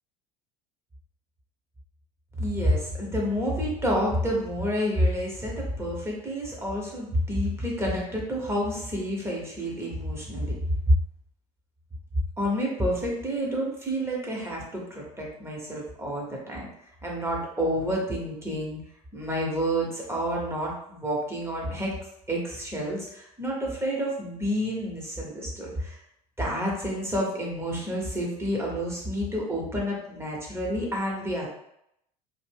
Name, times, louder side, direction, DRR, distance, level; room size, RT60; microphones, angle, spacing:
voice 1, 2.4-10.5 10.9-11.0 12.4-16.7 17.0-18.8 19.1-21.9 22.3-26.0 26.4-31.5, equal, 10° right, -3 dB, 1.0 m, -29 dB
2.4 x 2.1 x 3.5 m, 0.77 s
hypercardioid pair, 70°, 20 cm